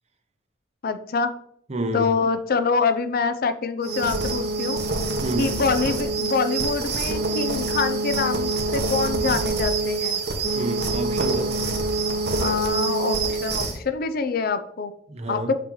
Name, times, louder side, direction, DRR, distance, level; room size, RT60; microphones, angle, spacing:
voice 1, 0.8-1.4 1.9-4.8 5.4-10.2 12.4-14.9 15.3-15.5, left 4 dB, 55° left, 10 dB, 0.5 m, -25 dB
voice 2, 1.7-2.1 5.2-5.6 10.5-11.6 15.1-15.5, right 2 dB, 35° right, 7 dB, 0.8 m, -28 dB
sound 1, 3.8-13.8, right 3 dB, 60° right, 1.1 m, -25 dB
6.1 x 5.9 x 3.1 m, 0.68 s
head